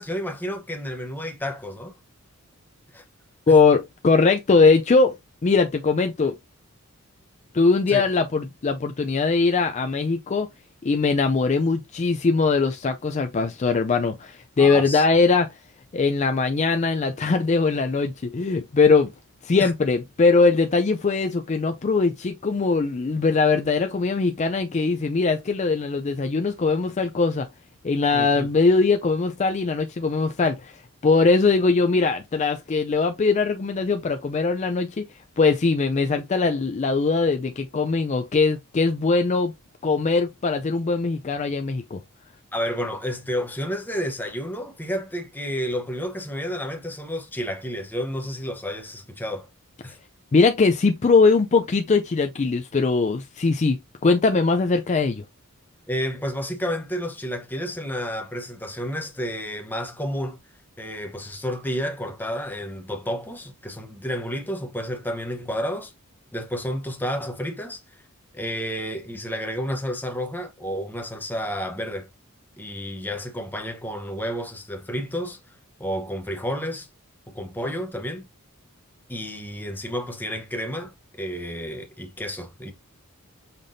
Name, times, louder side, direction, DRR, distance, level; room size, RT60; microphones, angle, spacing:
voice 1, 0.0-1.9 2.9-3.0 7.9-8.0 14.6-15.0 19.6-19.7 28.1-28.5 42.5-49.5 49.8-50.0 55.9-60.4 60.8-65.9 66.3-67.8 68.3-72.1 72.6-75.4 75.8-76.9 77.3-78.3 79.1-82.7, equal, 10° left, 1.0 m, -30 dB
voice 2, 3.5-5.2 5.4-6.3 7.5-10.5 10.8-15.5 15.9-19.1 19.4-27.5 27.8-30.7 31.0-35.0 35.4-39.5 39.8-42.0 50.3-55.2, left 4 dB, 30° left, 0.4 m, -21 dB
5.7 x 3.4 x 2.6 m
head